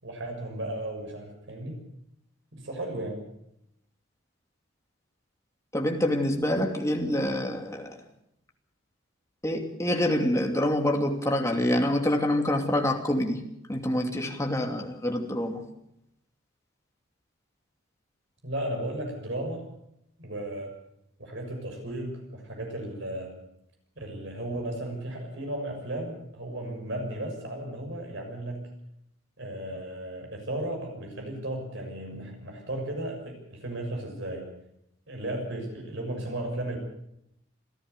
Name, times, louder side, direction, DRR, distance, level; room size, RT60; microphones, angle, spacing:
voice 1, 0.0-1.8 2.5-3.3 18.4-19.7 20.2-20.8 21.2-23.4 24.0-28.7 29.4-34.5 35.1-36.8, right 1 dB, 65° right, 4 dB, 6.5 m, -35 dB
voice 2, 5.7-8.0 9.4-13.4 13.7-15.6, left 1 dB, 15° left, 2 dB, 2.7 m, -26 dB
26.5 x 15.0 x 6.8 m, 0.79 s
head